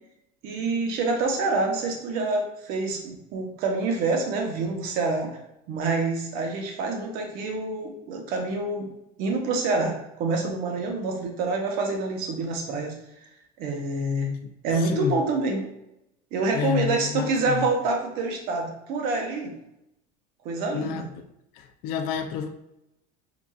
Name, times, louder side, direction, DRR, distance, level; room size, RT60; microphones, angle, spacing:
voice 1, 0.4-5.4 5.7-8.9 9.2-13.0 13.6-14.3 14.6-15.6 16.3-19.5 20.4-21.0, right 3 dB, 55° right, 2 dB, 0.9 m, -27 dB
voice 2, 14.4-15.2 16.5-17.7 20.7-21.1 21.5-22.5, left 8 dB, 55° left, 7 dB, 0.5 m, -30 dB
4.8 x 2.5 x 2.3 m, 0.85 s
cardioid pair, 155°, 18 cm